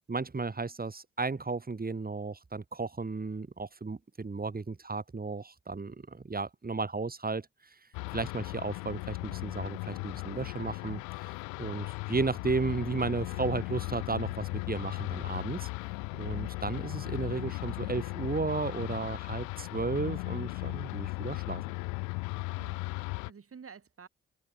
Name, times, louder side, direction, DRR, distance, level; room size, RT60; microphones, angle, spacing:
voice 1, 0.1-7.5 8.1-11.3 11.6-15.7 16.1-21.6, right 4 dB, 30° right, 3.3 m, -34 dB
sound 1, 7.9-23.3, left 28 dB, 85° left, 1.0 m, -37 dB
voice 2, 22.4-24.1, right 6 dB, 50° right, 5.6 m, -51 dB
hypercardioid pair, 40°, 29 cm